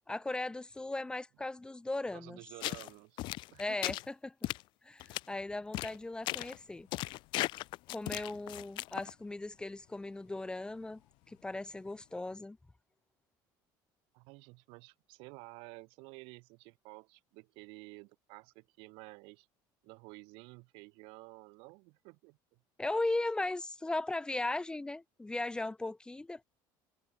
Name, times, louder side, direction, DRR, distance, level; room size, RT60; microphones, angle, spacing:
voice 1, 0.1-2.4 3.6-4.3 4.8-6.9 7.9-11.0 11.3-12.6 22.8-26.4, left 2 dB, 10° left, 1.0 m, -37 dB
voice 2, 2.1-3.2 3.5-3.9 14.1-19.5 19.8-22.6, right 29 dB, 80° right, 2.0 m, -52 dB
sound 1, 2.6-2.9 3.2-4.1 4.4-4.6 5.0-5.2 5.7-6.0 6.3-6.6 6.9-9.1, left 19 dB, 60° left, 0.4 m, -36 dB
Bus, 6.2-12.3, left 25 dB, 75° left, 6.4 m, -68 dB
cardioid pair, 130°, 9 cm